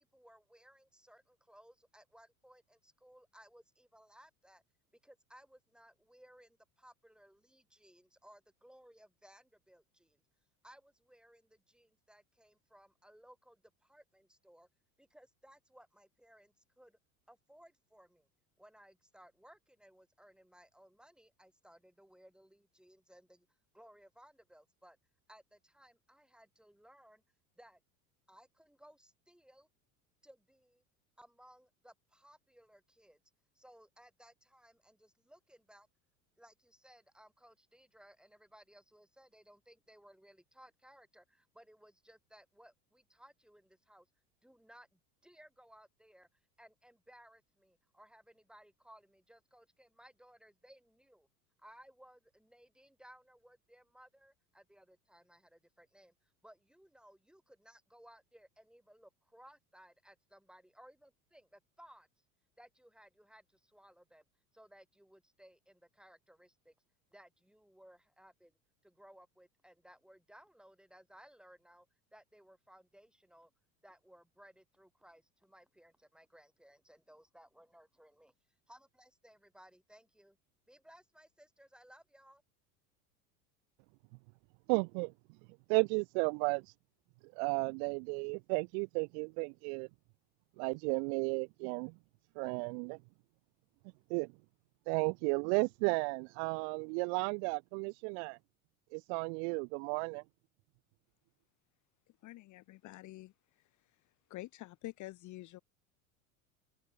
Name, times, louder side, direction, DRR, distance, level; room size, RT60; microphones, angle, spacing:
voice 1, 0.0-4.6 5.0-10.2 10.6-14.7 15.0-17.0 17.3-18.3 18.6-23.5 23.7-25.0 25.3-27.2 27.6-27.8 28.3-29.7 30.2-30.8 31.2-33.2 33.5-35.9 36.4-44.1 44.4-51.3 51.6-62.1 62.6-64.2 64.5-66.7 67.1-68.5 68.8-73.5 73.8-78.3 78.7-80.4 80.7-82.4, equal, ahead, 4.8 m, -61 dB
voice 2, 84.7-85.1 85.7-86.7 87.4-89.9 90.6-91.9 92.4-93.0 94.1-94.3 94.9-98.4 98.9-100.2, right 40 dB or more, 50° right, 0.5 m, -33 dB
voice 3, 102.2-103.3 104.3-105.6, left 17 dB, 40° left, 1.0 m, -47 dB
hypercardioid pair, 85°, 44 cm